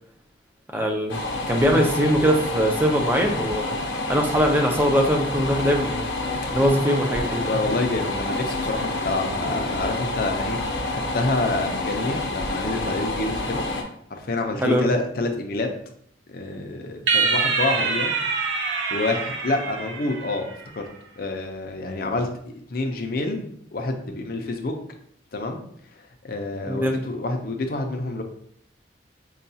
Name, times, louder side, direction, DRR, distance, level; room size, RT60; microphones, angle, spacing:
voice 1, 0.7-1.2 1.5-3.8 4.1-6.0 6.5-7.4 14.6-14.9 26.7-27.0, equal, 10° right, 2 dB, 0.4 m, -21 dB
sound 1, 1.1-13.8, left 2 dB, 85° left, 0.7 m, -28 dB
voice 2, 7.4-10.6 10.9-13.6 14.1-15.7 16.3-18.3 18.9-20.8 21.2-22.3 22.7-24.7 25.3-25.6 26.2-28.2, left 2 dB, 50° left, 4 dB, 0.5 m, -27 dB
sound 2, 17.1-20.6, right 4 dB, 75° right, 0.6 m, -25 dB
5.5 x 2.3 x 2.7 m, 0.66 s
head